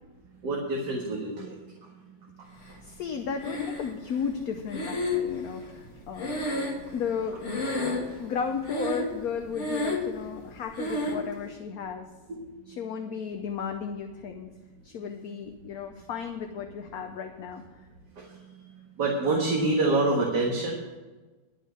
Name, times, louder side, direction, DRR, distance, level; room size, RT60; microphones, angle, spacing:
voice 1, 0.4-1.7 2.7-2.8 6.9-7.0 12.3-12.4 12.7-12.8 18.2-18.4 19.0-20.8, right 2 dB, 65° right, -1 dB, 2.2 m, -27 dB
voice 2, 2.8-6.4 6.9-7.5 7.8-12.1 12.7-14.5 14.8-17.6, left 6 dB, 60° left, 5 dB, 1.1 m, -34 dB
Breathing, 3.4-4.1 4.7-7.2 7.4-8.2 8.6-9.2 9.5-10.2 10.8-11.2, left 2 dB, 40° left, 2.1 m, -30 dB
11.0 x 6.5 x 8.7 m, 1.2 s
omnidirectional pair, 2.0 m